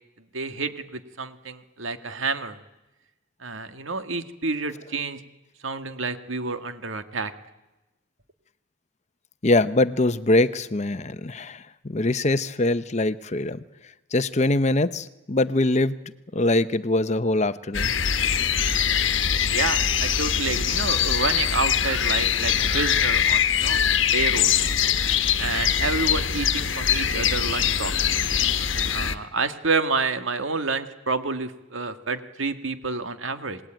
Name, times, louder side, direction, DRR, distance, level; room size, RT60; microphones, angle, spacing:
voice 1, 0.3-2.6 3.4-5.2 5.6-7.3 19.5-23.8 24.1-24.5 25.4-28.2 28.9-33.6, right 4 dB, 85° right, 8 dB, 1.9 m, -29 dB
voice 2, 9.4-13.6 14.1-16.0 16.3-17.9, left 2 dB, 35° left, 13 dB, 0.8 m, -23 dB
sound 1, 17.7-29.1, left 8 dB, 75° left, 1.3 m, -23 dB
27.5 x 20.0 x 9.0 m, 1.0 s
head